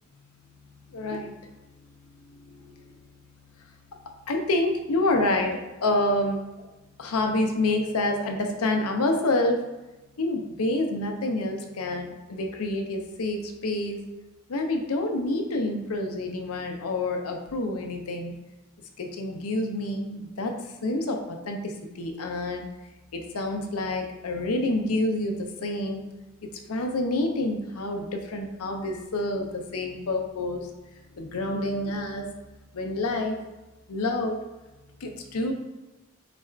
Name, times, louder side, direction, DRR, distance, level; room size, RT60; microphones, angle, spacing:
voice 1, 0.9-1.3 2.3-2.9 4.3-6.7 7.0-9.6 10.2-14.0 14.5-18.3 19.0-20.6 20.8-22.6 23.1-26.0 26.4-30.7 31.2-32.3 32.7-33.4 33.9-34.4 35.0-35.5, left 2 dB, 70° left, 4 dB, 0.6 m, -28 dB
4.1 x 2.4 x 4.4 m, 1.1 s
head